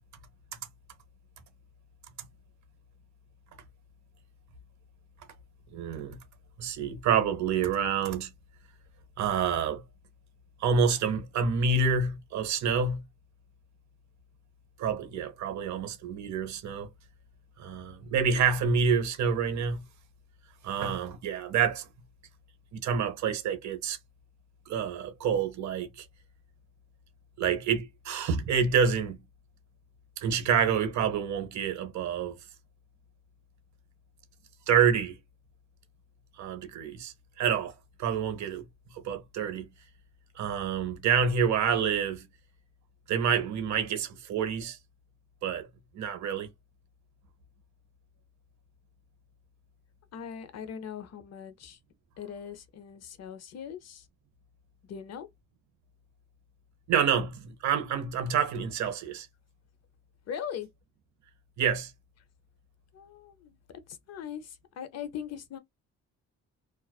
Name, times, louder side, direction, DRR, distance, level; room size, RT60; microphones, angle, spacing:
voice 1, 5.7-6.2 6.6-8.3 9.2-9.8 10.6-13.0 14.8-16.9 17.6-19.8 20.6-21.9 22.7-24.0 24.7-26.1 27.4-29.2 30.2-32.4 34.7-35.2 36.4-37.7 38.0-38.6 38.9-39.7 40.4-42.3 43.1-44.8 45.4-45.7 45.9-46.5 56.9-59.3 61.6-61.9, right 6 dB, 70° right, 0.8 m, -28 dB
voice 2, 50.1-51.8 52.2-54.1 54.8-55.3 60.3-60.7 62.9-65.6, left 8 dB, 55° left, 0.6 m, -40 dB
2.4 x 2.3 x 2.2 m
cardioid pair, 90°, 30 cm